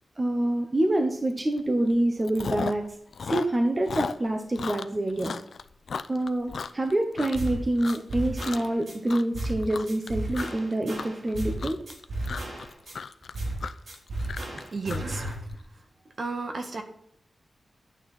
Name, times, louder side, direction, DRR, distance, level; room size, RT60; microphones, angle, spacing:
voice 1, 0.2-2.8 3.2-5.3 6.1-11.8, right 1 dB, 25° right, 4 dB, 1.0 m, -26 dB
Chewing mastication, 1.4-1.6 1.9-2.9 3.1-7.5 7.8-8.1 8.4-8.8 9.1-15.6, left 5 dB, 75° left, 0.5 m, -35 dB
sound 1, 7.3-7.6 7.9-8.9 9.3-9.6 9.9-11.6 11.9-12.9 13.3-13.6 13.9-15.3, right 1 dB, 80° right, 3.3 m, -33 dB
voice 2, 14.7-15.2 16.2-16.8, right 3 dB, 50° right, 5 dB, 1.7 m, -32 dB
11.5 x 8.8 x 4.2 m, 0.70 s
wide cardioid pair, 140°, 0 cm